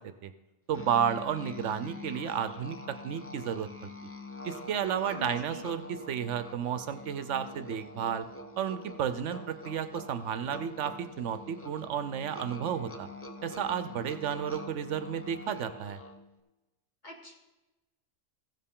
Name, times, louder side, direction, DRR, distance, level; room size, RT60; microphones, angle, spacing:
Musical instrument, 0.7-16.3, left 2 dB, 15° left, 0.5 m, -45 dB
voice 1, 0.7-3.9 4.4-8.3 8.6-13.1 13.4-16.0, right 8 dB, 75° right, 11 dB, 0.9 m, -32 dB
voice 2, 5.1-5.6 17.0-17.3, right 1 dB, 40° left, -1 dB, 1.8 m, -43 dB
15.5 x 6.7 x 3.7 m, 1.0 s
omnidirectional pair, 1.3 m